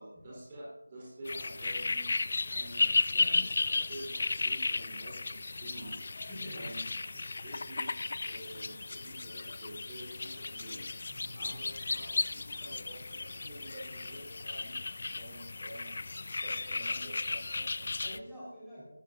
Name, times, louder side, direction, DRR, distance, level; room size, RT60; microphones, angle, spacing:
voice 1, 0.0-2.1 2.4-6.0 6.5-6.9 7.4-10.8 11.4-14.8 15.2-15.9 16.4-17.9, right 1 dB, 20° right, -5 dB, 4.0 m, -48 dB
sound 1, 1.3-18.2, left 3 dB, 40° left, 0.4 m, -34 dB
voice 2, 6.2-6.7 7.1-7.4 11.1-11.4 17.7-18.8, equal, ahead, -13 dB, 4.4 m, -47 dB
19.0 x 13.5 x 2.6 m, 0.95 s
figure-of-eight pair, 165°, 0 cm